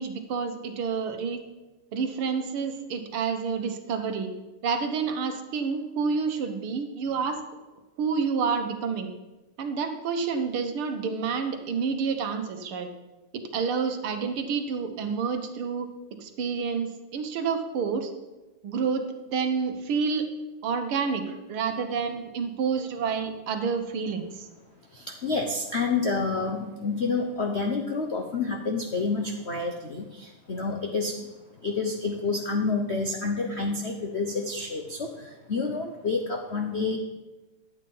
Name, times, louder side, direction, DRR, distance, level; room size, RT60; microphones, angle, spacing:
voice 1, 0.0-1.4 1.9-4.3 4.6-7.4 8.0-9.1 9.6-12.9 13.3-18.1 18.6-20.3 20.6-24.5, right 5 dB, 75° right, 6 dB, 1.9 m, -29 dB
voice 2, 24.9-31.3 31.6-37.0, left 4 dB, 60° left, 2 dB, 0.7 m, -29 dB
11.5 x 8.5 x 5.5 m, 1.1 s
omnidirectional pair, 2.4 m